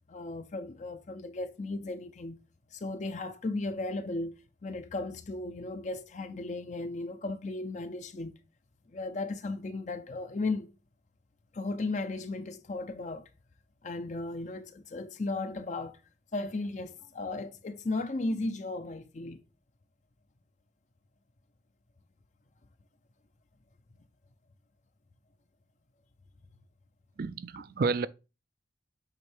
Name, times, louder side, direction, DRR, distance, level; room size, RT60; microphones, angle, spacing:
voice 1, 0.1-2.4 2.7-8.4 8.9-10.7 11.5-13.3 13.8-16.0 16.3-19.4, left 2 dB, 40° left, 0.5 m, -35 dB
voice 2, 27.2-28.1, right 4 dB, 55° right, 0.4 m, -30 dB
8.1 x 3.5 x 3.4 m
head